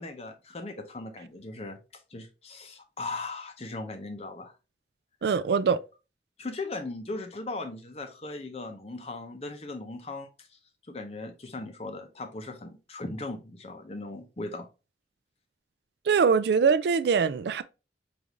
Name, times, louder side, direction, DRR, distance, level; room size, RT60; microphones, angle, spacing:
voice 1, 0.0-1.8 2.1-4.5 6.4-10.5 10.9-14.7, left 2 dB, 35° left, 0.7 m, -38 dB
voice 2, 5.2-5.8 16.1-17.6, right 5 dB, 65° right, 0.3 m, -23 dB
5.1 x 2.5 x 2.9 m
head